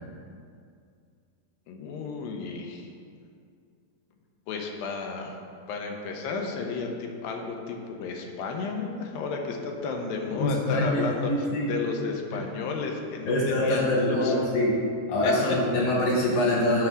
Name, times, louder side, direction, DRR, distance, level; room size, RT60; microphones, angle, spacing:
voice 1, 1.7-2.9 4.5-5.4 5.7-14.3 15.2-15.6, left 4 dB, 80° left, 2 dB, 2.5 m, -33 dB
voice 2, 10.4-11.7 13.3-14.8 15.1-16.9, left 1 dB, 65° left, -5 dB, 2.3 m, -24 dB
9.2 x 3.3 x 6.2 m, 2.3 s
omnidirectional pair, 4.1 m